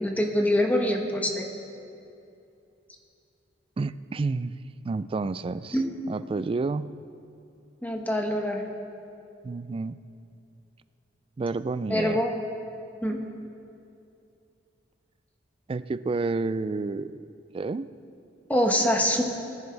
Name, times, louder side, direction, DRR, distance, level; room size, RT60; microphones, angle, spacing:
voice 1, 0.0-1.5 5.7-5.8 7.8-8.6 11.9-12.3 13.0-13.2 18.5-19.2, left 1 dB, 10° left, 2 dB, 1.1 m, -24 dB
voice 2, 3.8-4.6 4.8-5.8 6.1-6.9 9.4-10.0 11.4-12.2 15.7-17.3 17.5-17.9, right 3 dB, 30° right, 14 dB, 0.3 m, -30 dB
20.0 x 10.5 x 3.4 m, 2.6 s
head